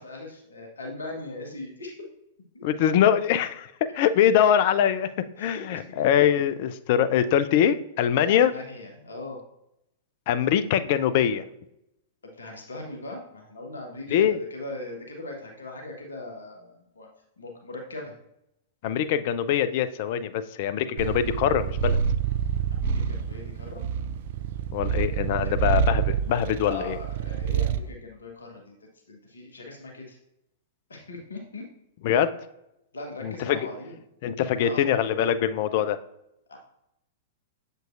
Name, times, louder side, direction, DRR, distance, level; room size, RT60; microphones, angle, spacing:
voice 1, 0.0-1.9 2.5-2.6 5.4-5.8 8.3-9.4 12.2-17.1 17.4-18.1 22.7-23.8 25.4-25.5 26.6-28.8 29.1-30.2 30.9-31.6 32.9-33.9 34.6-34.9 36.5-36.6, left 2 dB, 70° left, 1 dB, 1.1 m, -39 dB
voice 2, 2.6-5.1 5.4-8.5 10.3-11.4 14.1-14.4 18.8-22.0 24.7-27.0 32.0-32.3 33.2-33.7 34.2-36.0, left 9 dB, 45° left, 11 dB, 0.4 m, -23 dB
Purr, 21.0-27.9, right 7 dB, 50° right, 0.3 m, -27 dB
7.4 x 5.3 x 2.5 m, 0.84 s
figure-of-eight pair, 100°, 0 cm